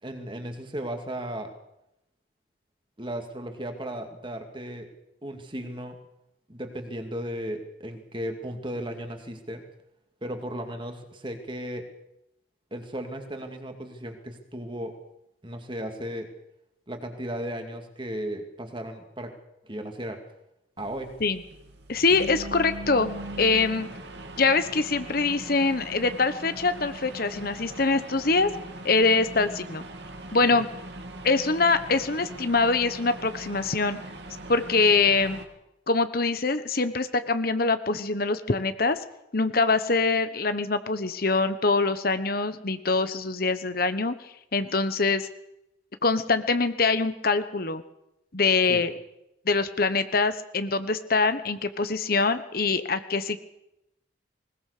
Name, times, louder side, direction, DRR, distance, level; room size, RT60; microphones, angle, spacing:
voice 1, 0.0-1.5 3.0-4.9 5.2-6.0 6.5-9.7 10.2-11.9 12.7-15.0 15.4-16.3 16.9-19.3 19.6-20.2 20.8-21.2 30.4-30.6 48.7-48.8, right 1 dB, 25° right, 5 dB, 2.5 m, -35 dB
sound 1, 20.8-35.5, right 1 dB, 60° right, 2.8 m, -40 dB
voice 2, 21.9-23.1 23.4-23.9 24.4-28.5 28.8-29.8 30.3-30.7 31.2-34.0 34.5-35.4 35.9-39.0 39.3-44.1 44.5-45.3 46.0-47.8 48.3-48.9 49.5-53.4, left 3 dB, 50° left, 11 dB, 1.2 m, -24 dB
21.0 x 20.5 x 6.8 m, 0.86 s
head